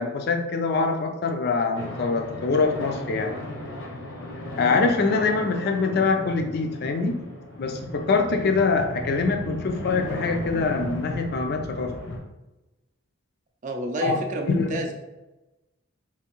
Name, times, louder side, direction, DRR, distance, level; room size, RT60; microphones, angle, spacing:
voice 1, 0.0-3.3 4.6-7.2 7.6-11.9 14.0-14.2 14.5-14.8, left 4 dB, 50° left, 5 dB, 0.4 m, -24 dB
sound 1, 1.7-12.2, left 1 dB, 75° left, 0.7 m, -35 dB
voice 2, 13.6-14.9, right 1 dB, 35° right, 2 dB, 0.4 m, -29 dB
3.5 x 2.6 x 2.9 m, 1.0 s
head